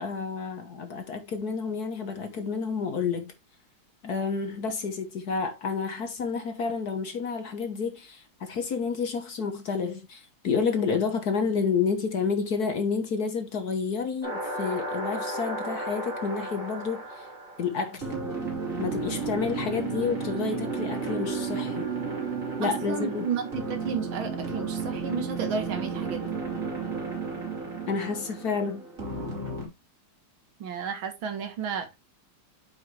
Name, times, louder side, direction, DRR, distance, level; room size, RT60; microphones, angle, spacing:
voice 1, 0.0-3.3 4.0-17.3 17.6-18.1 18.8-21.9 22.6-23.3 27.9-28.8, left 5 dB, 50° left, 1.5 m, -30 dB
sound 1, 14.2-29.7, right 4 dB, 35° right, 3.5 m, -33 dB
voice 2, 22.6-26.4 30.6-31.9, right 6 dB, 70° right, 2.1 m, -32 dB
8.4 x 5.6 x 3.2 m
omnidirectional pair, 2.3 m